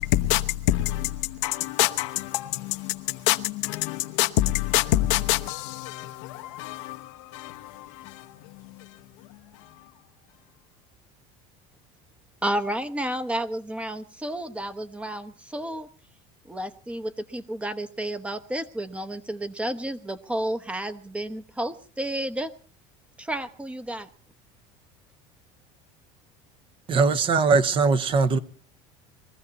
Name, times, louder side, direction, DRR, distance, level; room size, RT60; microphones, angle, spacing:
voice 1, 0.0-9.0 9.5-9.7, left 16 dB, 80° left, 1.0 m, -27 dB
voice 2, 12.4-15.9 16.5-22.5 23.2-24.1, right 1 dB, 10° right, 1.0 m, -31 dB
voice 3, 26.9-28.4, right 4 dB, 35° right, 1.0 m, -20 dB
22.0 x 15.0 x 4.1 m
cardioid pair, 140°, 15 cm